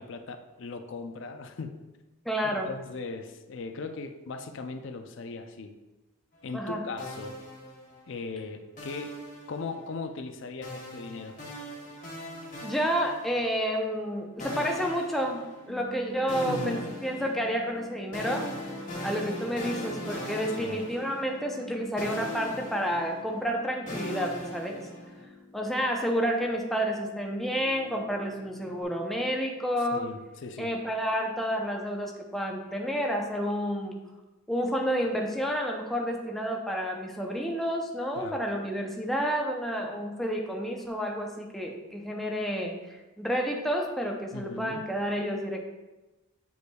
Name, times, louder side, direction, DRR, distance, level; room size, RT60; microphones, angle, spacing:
voice 1, 0.0-1.8 2.7-5.7 6.4-7.4 8.1-9.1 9.5-11.4 16.5-16.9 20.6-20.8 29.8-30.7 38.2-38.4 44.3-44.8, left 4 dB, 60° left, 7 dB, 0.4 m, -38 dB
voice 2, 2.3-2.7 6.5-6.8 12.6-18.5 19.0-24.9 25.5-30.1 30.6-34.0 34.5-45.6, equal, ahead, 0 dB, 0.5 m, -30 dB
sound 1, 7.0-8.2 8.8-10.0 10.6-13.7 14.4-15.9 16.3-21.7 22.0-25.2, equal, 40° left, 1.2 m, -40 dB
sound 2, 15.7-28.8, left 2 dB, 80° left, 1.2 m, -48 dB
7.9 x 5.2 x 2.3 m, 1.1 s
head